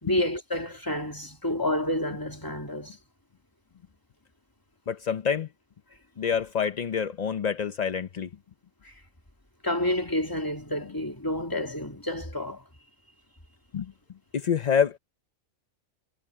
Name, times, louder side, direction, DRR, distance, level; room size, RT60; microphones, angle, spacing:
voice 1, 0.0-3.0 8.8-8.9 9.6-12.6, left 1 dB, 15° left, 2.4 m, -29 dB
voice 2, 4.9-5.5 6.2-8.3 13.7-13.9 14.3-15.0, left 7 dB, 45° left, 0.5 m, -27 dB
omnidirectional pair, 1.3 m